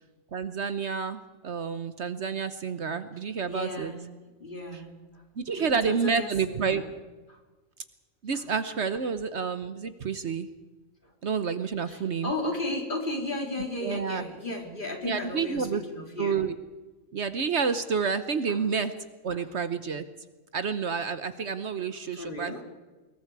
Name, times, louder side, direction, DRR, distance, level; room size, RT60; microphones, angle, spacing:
voice 1, 0.3-3.9 5.4-6.8 8.2-10.5 11.2-12.3 13.8-14.2 15.0-15.8 16.2-16.5 17.1-18.9 19.2-20.0 20.5-22.6, right 6 dB, 60° right, 11 dB, 1.2 m, -29 dB
voice 2, 3.4-4.1 4.4-5.2 5.5-7.0 7.3-7.4 8.3-8.4 11.0-11.1 11.9-16.4 18.5-18.6 19.3-19.5 22.1-22.6, left 2 dB, 35° left, 1 dB, 3.8 m, -35 dB
26.0 x 21.5 x 4.8 m, 1.2 s
omnidirectional pair, 1.4 m